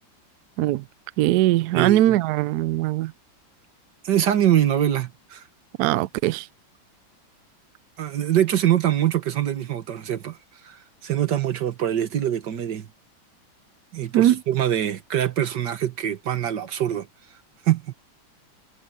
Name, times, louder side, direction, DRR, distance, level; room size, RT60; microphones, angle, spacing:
voice 1, 1.2-3.1 5.8-6.5 14.1-14.4, right 14 dB, 85° right, 0.8 m, -20 dB
voice 2, 1.7-2.2 4.0-5.4 8.0-10.4 10.6-10.8 11.0-12.9 13.9-17.1 17.7-17.9, right 11 dB, 60° right, 1.9 m, -23 dB
omnidirectional pair, 2.2 m